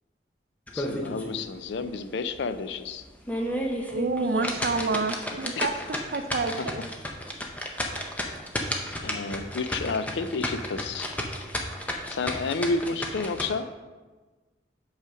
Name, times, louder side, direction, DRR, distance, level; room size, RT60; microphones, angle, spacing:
voice 1, 0.7-3.1 5.6-5.7 6.6-6.7 9.0-11.1 12.1-13.7, left 4 dB, 75° left, 11 dB, 0.4 m, -30 dB
sound 1, 0.7-1.4 1.8-1.9 2.4-2.5 3.1-13.5, left 1 dB, 10° left, 0.6 m, -32 dB
voice 2, 3.9-5.7 6.1-6.8, right 3 dB, 55° right, 8 dB, 0.5 m, -28 dB
5.5 x 5.0 x 6.1 m, 1.3 s
head